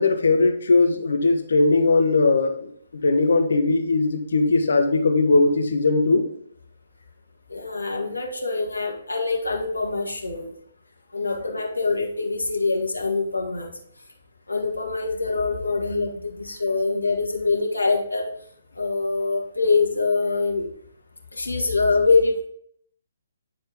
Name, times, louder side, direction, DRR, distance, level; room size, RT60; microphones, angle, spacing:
voice 1, 0.0-6.3 12.0-12.1, left 3 dB, 65° left, 5 dB, 1.2 m, -19 dB
voice 2, 7.5-10.5 11.1-13.7 14.5-18.3 18.8-20.7 21.3-22.4, left 3 dB, 85° left, 1 dB, 1.7 m, -24 dB
9.6 x 4.4 x 3.6 m, 0.65 s
figure-of-eight pair, 135°, 0 cm